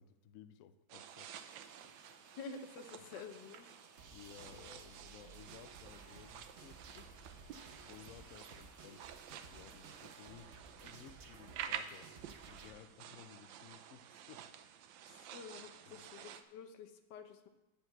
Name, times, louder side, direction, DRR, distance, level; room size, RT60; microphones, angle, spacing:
voice 1, 0.0-1.3 4.1-7.1 7.8-12.1 12.5-14.5 15.1-15.3 15.9-16.1, left 10 dB, 90° left, 12 dB, 0.7 m, -57 dB
sound 1, 0.9-16.4, right 9 dB, 80° right, 1.3 m, -51 dB
sound 2, 1.0-10.5, right 1 dB, 25° right, 0.4 m, -66 dB
voice 2, 2.4-3.8 15.0-17.5, left 5 dB, 70° left, 8 dB, 1.4 m, -50 dB
sound 3, 4.0-12.7, right 5 dB, 50° right, 0.9 m, -56 dB
8.0 x 5.3 x 7.7 m, 0.98 s
omnidirectional pair, 2.0 m